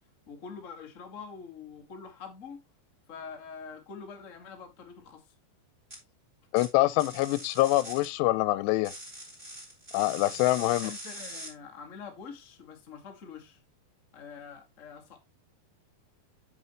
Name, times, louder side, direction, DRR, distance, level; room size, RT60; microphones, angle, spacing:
voice 1, 0.3-2.6 3.1-5.3 10.7-13.6 14.1-15.2, left 6 dB, 70° left, 0.7 m, -45 dB
sound 1, 5.9-6.0 6.6-6.7 7.0-8.1 8.8-11.5, right 1 dB, 15° right, 3.5 m, -42 dB
voice 2, 6.5-8.9 9.9-10.9, left 17 dB, 90° left, 2.7 m, -25 dB
8.7 x 7.3 x 3.0 m
omnidirectional pair, 4.8 m